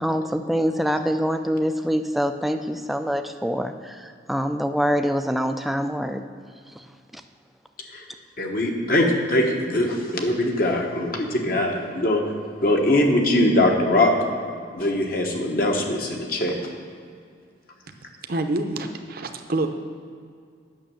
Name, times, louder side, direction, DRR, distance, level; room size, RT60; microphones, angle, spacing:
voice 1, 0.0-3.7 4.3-6.2, equal, ahead, 7 dB, 0.4 m, -24 dB
voice 2, 8.4-12.2 12.6-14.1 14.7-16.5, left 1 dB, 50° left, 1 dB, 1.2 m, -21 dB
voice 3, 18.3-19.7, right 2 dB, 55° right, 6 dB, 0.7 m, -26 dB
8.9 x 6.4 x 7.0 m, 2.2 s
head